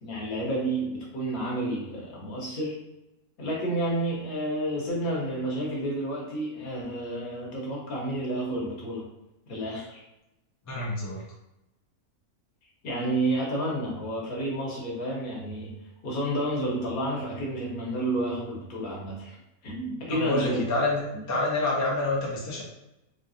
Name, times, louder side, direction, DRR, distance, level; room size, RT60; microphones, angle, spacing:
voice 1, 0.0-2.8 3.4-9.1 9.5-10.0 12.8-15.8 16.0-19.3 19.6-20.6 21.1-21.2, right 1 dB, 75° left, -3 dB, 1.6 m, -30 dB
voice 2, 10.7-11.2 20.1-21.0 21.3-22.6, left 2 dB, 20° left, -3 dB, 0.4 m, -27 dB
3.5 x 3.2 x 2.6 m, 0.93 s
omnidirectional pair, 1.5 m